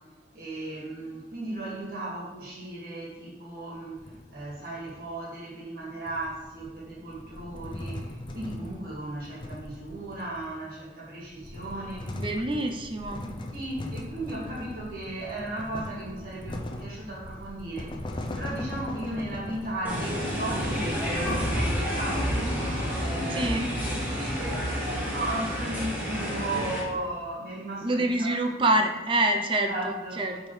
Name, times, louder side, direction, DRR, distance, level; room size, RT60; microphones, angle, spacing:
voice 1, 0.3-12.2 13.3-18.0 18.4-22.7 23.0-28.6 29.7-30.2, right 1 dB, 55° right, -5 dB, 1.9 m, -36 dB
sound 1, 3.7-5.1 6.1-10.6 11.2-21.6, left 1 dB, 25° left, 0.5 m, -39 dB
voice 2, 12.1-13.3 23.3-23.7 27.8-30.4, right 1 dB, 30° right, 4 dB, 0.5 m, -26 dB
sound 2, 19.8-26.8, equal, 10° right, 1.5 m, -29 dB
8.4 x 3.7 x 3.2 m, 1.2 s
head